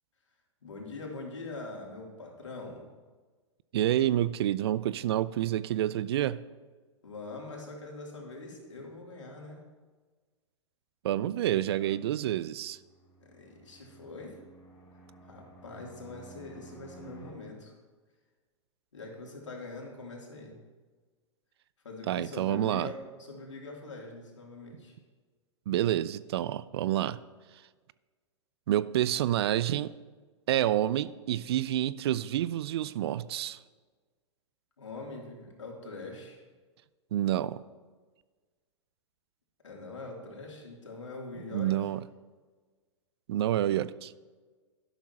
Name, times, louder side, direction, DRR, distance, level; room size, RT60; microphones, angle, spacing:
voice 1, 0.6-2.8 7.0-9.6 11.8-11.9 13.2-14.4 15.2-17.7 18.9-20.6 21.8-24.9 34.8-36.4 39.6-41.7, left 3 dB, 80° left, -1 dB, 3.0 m, -43 dB
voice 2, 3.7-6.4 11.0-12.8 22.1-22.9 25.7-27.2 28.7-29.9 30.5-33.6 37.1-37.6 41.5-42.0 43.3-44.1, right 12 dB, 60° right, 18 dB, 0.5 m, -28 dB
Fixed-wing aircraft airplane, 12.5-17.3, right 1 dB, 20° left, 3.4 m, -53 dB
12.5 x 11.5 x 2.9 m, 1.4 s
figure-of-eight pair, 105°, 15 cm